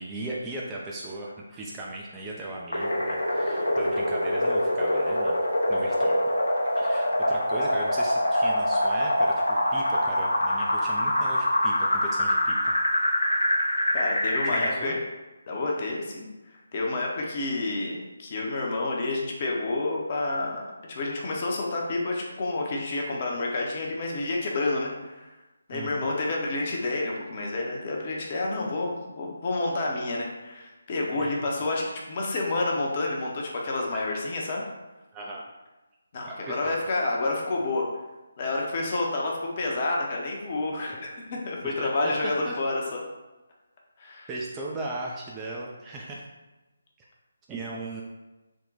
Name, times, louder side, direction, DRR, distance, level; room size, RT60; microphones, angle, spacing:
voice 1, 0.0-5.4 5.7-6.2 6.8-12.7 14.4-15.0 25.7-26.1 31.2-31.4 35.1-35.4 36.3-36.7 41.6-42.6 44.3-46.3 47.0-47.1 47.5-48.0, right 2 dB, 15° right, -4 dB, 0.3 m, -37 dB
sound 1, 2.7-14.7, left 1 dB, 75° left, 0.7 m, -25 dB
voice 2, 13.9-15.0 15.5-20.6 20.9-25.3 25.7-34.6 36.1-37.8 38.4-43.0 44.0-44.3, left 2 dB, 35° left, -1 dB, 0.7 m, -29 dB
3.6 x 2.1 x 3.9 m, 1.1 s
figure-of-eight pair, 150°, 0 cm